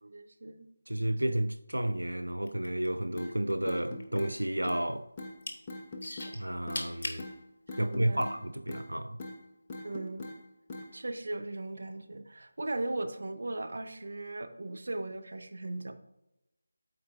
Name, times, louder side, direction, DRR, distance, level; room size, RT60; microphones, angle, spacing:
voice 1, 0.0-0.7 7.7-8.2 9.8-10.2 10.9-15.9, right 2 dB, 55° right, 0.8 m, -38 dB
voice 2, 0.9-5.1 6.3-7.3 7.8-9.2, right 1 dB, 80° right, 0.4 m, -31 dB
sound 1, 2.4-3.5 3.8-4.9 5.2-5.6 6.0-7.2 7.9-8.0, left 2 dB, 45° left, 1.1 m, -39 dB
sound 2, 3.2-3.3 3.7-4.3 4.7-4.8 5.2-5.3 5.7-6.3 6.7-6.9 7.2-7.3 7.7-8.4 8.7-8.9 9.2-9.4 9.7-10.4 10.7-10.9, left 2 dB, 20° left, 0.7 m, -41 dB
13.0 x 4.4 x 2.5 m
figure-of-eight pair, 160°, 0 cm